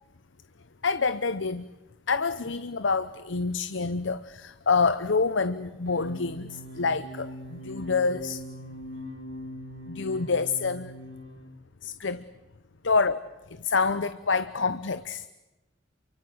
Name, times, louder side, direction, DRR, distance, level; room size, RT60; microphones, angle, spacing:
voice 1, 0.8-1.6 2.1-8.4 9.9-10.9 11.8-12.2 12.8-13.2 13.6-15.2, left 4 dB, 75° left, 13 dB, 0.9 m, -27 dB
sound 1, 5.9-11.5, equal, 75° right, 6.6 m, -41 dB
29.0 x 24.5 x 7.9 m, 1.1 s
head